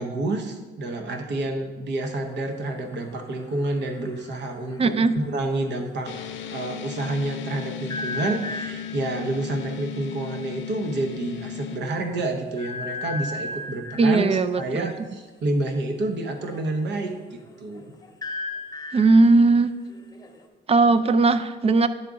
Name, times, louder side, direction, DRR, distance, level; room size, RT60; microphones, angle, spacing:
voice 1, 0.0-6.1 6.5-14.3 14.6-17.9, right 2 dB, 60° right, 5 dB, 0.9 m, -29 dB
sound 1, 2.2-6.6 7.9-9.1 10.3-10.4 10.7-10.9 11.3-11.4 12.5-14.2 16.3-20.5, left 2 dB, 20° left, 0.9 m, -37 dB
voice 2, 4.8-5.1 14.0-14.9 18.9-19.7 20.7-21.9, right 3 dB, 30° right, 12 dB, 0.4 m, -18 dB
sound 2, 6.1-11.8, left 9 dB, 70° left, 0.6 m, -36 dB
10.5 x 3.8 x 3.6 m, 1.3 s
cardioid pair, 90°, 20 cm